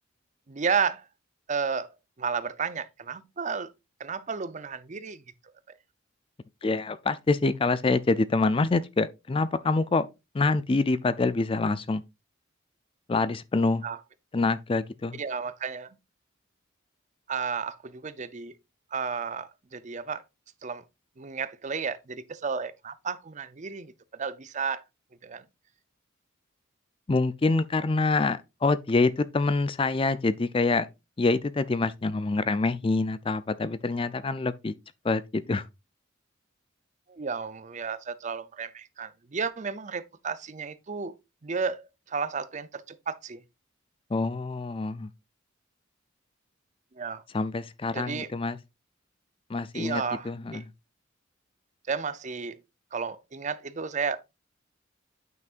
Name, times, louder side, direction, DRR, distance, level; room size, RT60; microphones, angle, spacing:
voice 1, 0.5-1.1 1.5-3.7 4.0-5.2 13.8-14.0 15.2-15.9 17.3-18.5 18.9-20.2 20.6-20.8 21.2-24.8 25.2-25.4 37.1-41.2 41.4-43.4 47.0-47.2 47.9-48.3 49.7-50.6 51.9-52.6 52.9-54.2, right 5 dB, 35° right, 0.6 m, -32 dB
voice 2, 6.6-10.1 10.3-12.0 13.1-13.8 14.3-15.2 27.1-30.9 31.2-34.7 35.0-35.7 44.1-45.1 47.3-48.6 49.5-50.6, left 3 dB, 25° left, 0.4 m, -26 dB
9.3 x 5.8 x 2.5 m
head